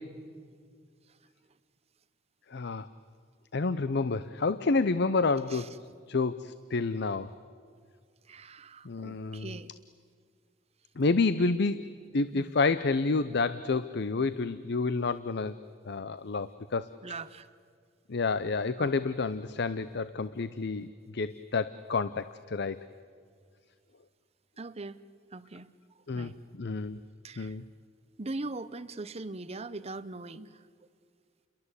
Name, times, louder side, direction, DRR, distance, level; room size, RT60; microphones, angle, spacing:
voice 1, 2.5-2.9 3.5-5.7 6.1-7.3 8.8-9.6 11.0-15.5 15.9-16.9 18.1-20.9 21.1-22.9 26.1-27.0 27.4-27.6, left 3 dB, 60° left, 14 dB, 0.6 m, -29 dB
voice 2, 8.3-9.7 12.3-12.5 17.0-17.5 18.8-18.9 24.6-25.0 25.3-25.7 26.1-26.4 27.2-27.5 28.2-30.5, right 3 dB, 30° right, 13 dB, 0.8 m, -40 dB
30.0 x 22.5 x 8.2 m, 2.1 s
head